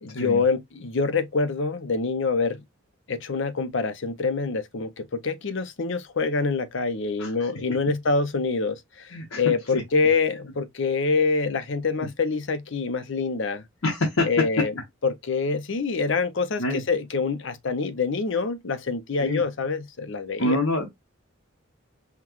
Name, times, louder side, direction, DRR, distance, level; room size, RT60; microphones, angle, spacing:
voice 1, 0.0-2.6 3.1-9.1 9.4-13.6 14.2-14.7 15.0-16.6 16.9-20.6, left 4 dB, 60° left, 0.6 m, -26 dB
voice 2, 7.2-7.5 9.1-9.4 9.7-9.8 13.8-14.3 16.6-16.8 19.2-19.4 20.4-20.9, left 1 dB, 85° left, 1.1 m, -26 dB
5.7 x 2.3 x 3.0 m
head